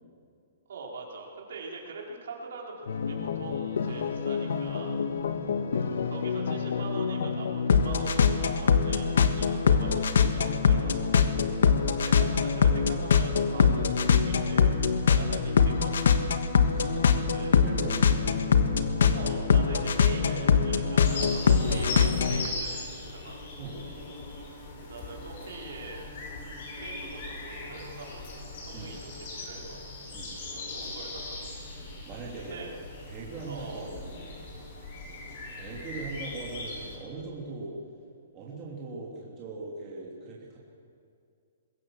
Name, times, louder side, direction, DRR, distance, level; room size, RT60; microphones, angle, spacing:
voice 1, 0.7-5.0 6.0-11.1 12.0-14.7 15.1-16.4 17.1-17.6 19.1-23.5 24.9-26.0 26.8-29.8 30.4-31.6 32.4-32.7 33.5-33.8, right 4 dB, 65° right, -1 dB, 4.2 m, -43 dB
sound 1, 2.9-22.5, left 6 dB, 75° left, 1.4 m, -24 dB
voice 2, 5.3-6.1 11.3-11.8 12.3-12.4 16.7-18.4 23.6-23.9 28.7-28.9 30.1-30.3 32.1-32.7 33.1-34.4 35.5-37.8 38.3-40.6, right 3 dB, 20° right, -5 dB, 3.0 m, -41 dB
sound 2, 21.0-37.0, left 2 dB, 40° left, 5.1 m, -39 dB
21.5 x 17.0 x 7.6 m, 2.4 s
hypercardioid pair, 175°, 0 cm